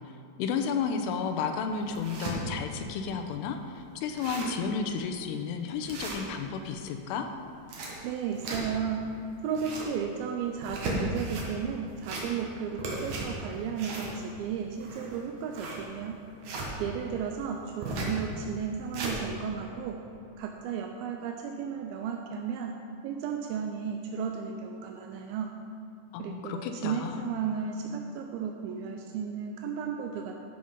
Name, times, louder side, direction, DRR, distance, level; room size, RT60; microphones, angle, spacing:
voice 1, 0.4-7.3 26.1-27.2, left 5 dB, 85° left, 6 dB, 2.7 m, -32 dB
sound 1, 1.0-1.1 1.6-2.4 2.9-3.0 3.3-3.4 3.8-3.9 4.0-4.6 5.1-5.2 5.9-6.7 7.4-8.9 9.4-10.0 10.5-11.5 11.9-12.5 12.8-16.7 17.8-18.2 18.6-19.2, right 2 dB, 60° right, 2.2 m, -36 dB
voice 2, 8.0-9.1 9.4-16.2 16.8-20.0 20.4-22.8 23.0-25.5 26.2-30.4, right 7 dB, 85° right, 3 dB, 2.1 m, -34 dB
12.5 x 5.3 x 5.5 m, 2.6 s
omnidirectional pair, 4.8 m